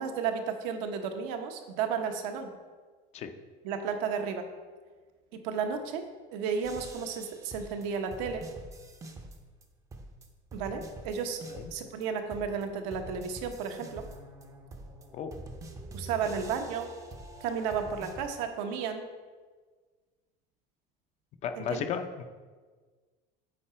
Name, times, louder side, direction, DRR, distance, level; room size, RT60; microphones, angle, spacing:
voice 1, 0.0-2.5 3.6-4.5 5.3-8.5 10.5-11.4 11.7-14.1 15.9-16.9 17.4-19.1 21.6-21.9, right 6 dB, 80° right, 5 dB, 1.0 m, -33 dB
sound 1, 6.6-9.6 9.9-12.0 12.3-18.2, right 2 dB, 15° right, 0.5 m, -46 dB
voice 2, 21.4-22.2, left 7 dB, 35° left, 9 dB, 0.5 m, -34 dB
8.6 x 4.8 x 4.4 m, 1.4 s
cardioid pair, 160°, 21 cm